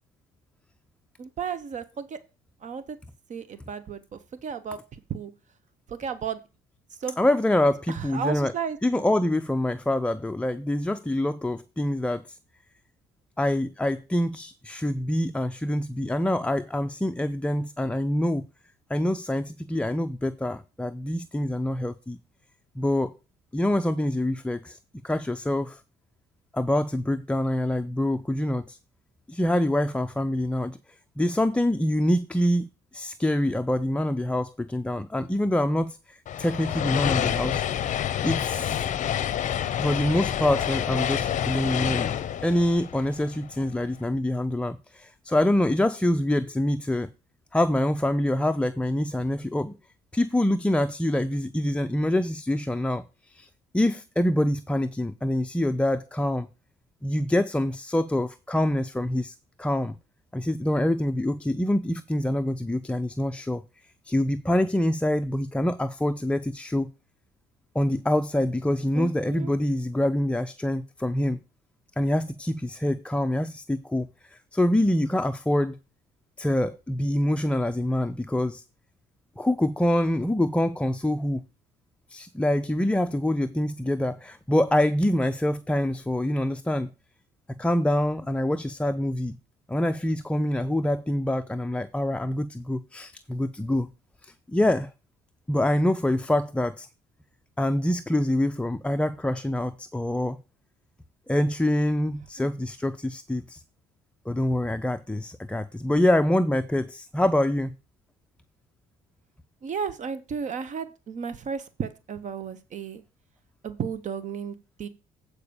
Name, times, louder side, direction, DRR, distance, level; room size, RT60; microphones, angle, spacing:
voice 1, 1.2-2.2 2.6-3.0 3.3-4.8 5.1-5.3 5.9-6.4 7.0-7.2 7.9-9.0 68.9-69.5 102.4-102.5 109.6-113.0 113.6-114.9, right 6 dB, 45° right, 0.9 m, -33 dB
voice 2, 7.2-8.5 8.8-12.4 13.4-18.5 18.9-22.2 22.8-23.1 23.5-24.8 25.0-25.8 26.5-28.8 29.3-30.8 31.2-32.7 32.9-37.6 38.2-38.9 39.8-42.1 42.4-47.1 47.5-49.8 50.1-53.5 53.7-56.5 57.0-60.0 60.3-63.6 64.1-66.9 67.7-71.4 72.0-75.8 76.4-78.6 79.4-81.4 82.1-86.9 87.5-89.4 89.7-93.9 94.2-94.9 95.5-96.9 97.6-100.4 101.3-103.6 104.3-107.7, left 1 dB, 5° left, 0.4 m, -25 dB
sound 1, 36.3-43.7, left 10 dB, 50° left, 0.7 m, -28 dB
8.4 x 4.7 x 6.9 m
cardioid pair, 110°, 17 cm